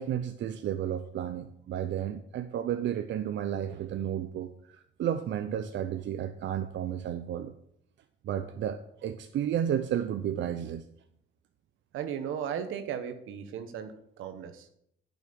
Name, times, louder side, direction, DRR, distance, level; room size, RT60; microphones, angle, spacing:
voice 1, 0.0-7.5 8.2-10.8, right 10 dB, 70° right, 9 dB, 0.7 m, -32 dB
voice 2, 11.9-13.9 14.2-14.7, right 8 dB, 85° right, 9 dB, 1.2 m, -36 dB
10.5 x 6.2 x 6.9 m, 0.72 s
cardioid pair, 90°, 20 cm